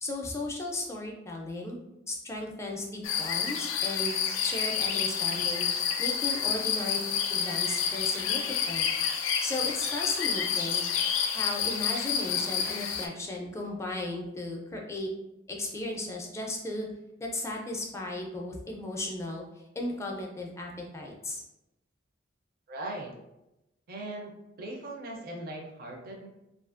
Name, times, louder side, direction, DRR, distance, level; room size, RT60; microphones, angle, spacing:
voice 1, 0.0-1.8 2.1-4.2 4.4-5.7 6.0-7.0 7.3-8.9 9.4-10.9 11.3-15.1 15.5-16.9 17.2-21.4, left 2 dB, 15° left, -1 dB, 0.4 m, -35 dB
sound 1, 3.0-13.1, left 7 dB, 85° left, 0.4 m, -29 dB
voice 2, 22.7-23.1 23.9-24.3 24.6-26.3, right 1 dB, 50° right, 0 dB, 0.5 m, -39 dB
2.6 x 2.4 x 2.4 m, 0.92 s
head